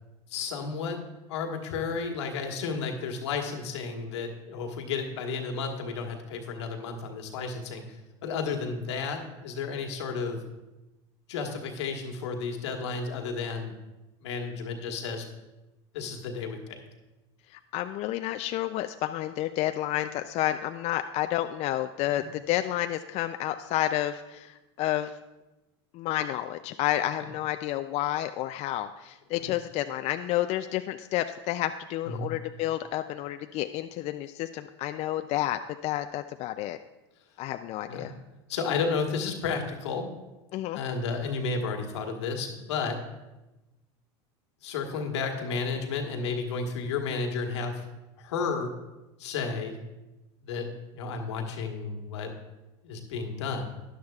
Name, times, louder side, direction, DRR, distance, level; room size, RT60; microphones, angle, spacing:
voice 1, 0.3-1.0 1.3-10.4 11.3-13.7 14.2-15.2 15.9-16.8 22.2-22.3 29.4-29.5 32.0-32.3 37.9-38.1 38.5-40.1 40.7-43.0 44.6-47.8 48.2-48.7 49.2-49.8 50.4-52.3 52.8-53.6, left 4 dB, 85° left, 3 dB, 1.5 m, -32 dB
voice 2, 17.5-25.1 25.9-36.8 37.4-38.1 40.5-40.8, left 13 dB, 50° left, 8 dB, 0.4 m, -30 dB
13.0 x 10.5 x 2.4 m, 1.0 s
hypercardioid pair, 100°, 14 cm